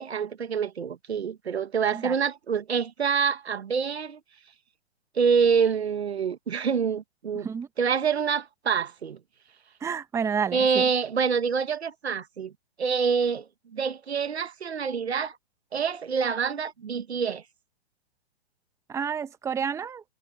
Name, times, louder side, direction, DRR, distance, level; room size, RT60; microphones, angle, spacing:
voice 1, 0.0-4.2 5.2-7.5 7.8-9.2 10.5-12.5 12.8-15.4 15.7-17.4, right 6 dB, 75° right, 1.8 m, -26 dB
voice 2, 7.3-7.7 9.8-10.8 18.9-20.0, right 6 dB, 10° right, 1.2 m, -30 dB
hypercardioid pair, 130°, 32 cm